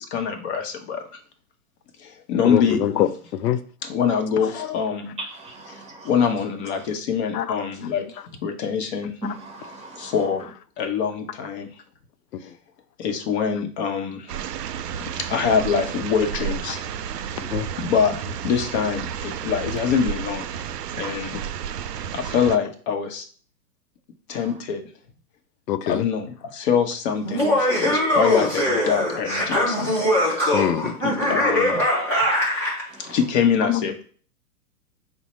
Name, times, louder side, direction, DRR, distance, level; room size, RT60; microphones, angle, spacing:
voice 1, 0.1-1.0 2.0-2.8 3.8-5.1 5.7-9.1 10.0-10.5 10.8-11.7 12.4-12.5 13.0-14.4 15.0-16.9 17.8-20.6 21.0-21.4 22.1-23.2 24.3-24.8 25.9-30.1 31.0-31.9 33.0-34.0, left 7 dB, 45° left, 0.9 m, -24 dB
voice 2, 2.4-3.6 7.3-7.6 12.3-12.4 17.4-17.7 25.7-26.1 30.5-30.9 33.6-33.8, left 10 dB, 85° left, 0.6 m, -24 dB
voice 3, 5.2-6.1 9.2-10.1 32.9-33.2, right 2 dB, 15° right, 0.9 m, -37 dB
sound 1, 14.3-22.6, right 8 dB, 85° right, 0.5 m, -31 dB
Laughter, 27.2-32.8, left 1 dB, 5° left, 0.4 m, -22 dB
4.5 x 2.2 x 4.1 m
hypercardioid pair, 130°, 47 cm